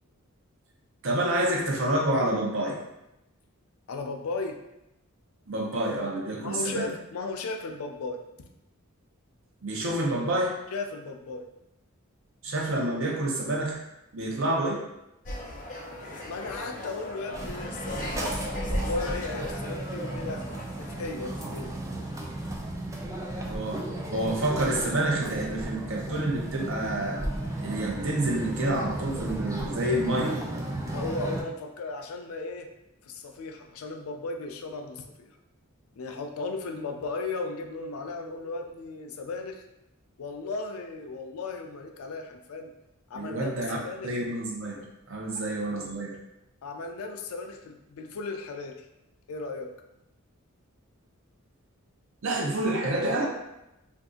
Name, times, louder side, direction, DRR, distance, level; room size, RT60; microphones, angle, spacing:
voice 1, 1.0-2.8 5.5-6.9 9.6-10.6 12.4-13.8 14.1-14.8 23.5-23.8 24.1-27.2 27.6-30.3 43.1-43.8 44.0-46.2 52.2-53.3, right 1 dB, 65° right, -1 dB, 0.7 m, -28 dB
voice 2, 3.9-4.6 6.4-8.5 10.7-11.5 16.3-20.4 20.8-21.7 30.9-32.7 33.0-35.4 35.9-39.6 40.2-42.7 43.1-44.1 45.3-45.4 46.6-48.9 49.3-49.7, left 3 dB, 85° left, 5 dB, 0.4 m, -36 dB
sound 1, 15.3-21.4, left 1 dB, 40° left, 0.6 m, -38 dB
sound 2, 17.3-31.4, right 1 dB, 15° right, 0.3 m, -34 dB
2.6 x 2.4 x 3.6 m, 0.88 s
head